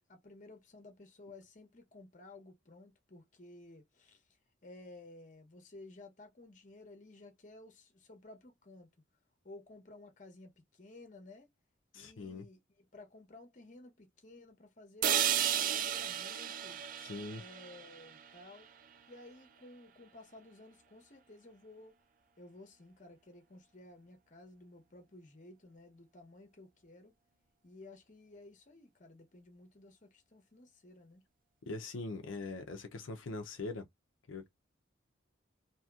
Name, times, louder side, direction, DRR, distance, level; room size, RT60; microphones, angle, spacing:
voice 1, 0.0-4.2 4.6-8.9 9.4-11.5 11.9-16.8 17.3-18.7 19.1-21.9 22.4-27.1 27.6-31.2, left 2 dB, 40° left, 0.9 m, -55 dB
voice 2, 11.9-12.5 17.0-17.4 31.7-33.8 34.3-34.5, left 3 dB, 85° left, 0.5 m, -42 dB
sound 1, 15.0-19.0, right 10 dB, 45° right, 0.3 m, -34 dB
2.8 x 2.8 x 2.3 m
head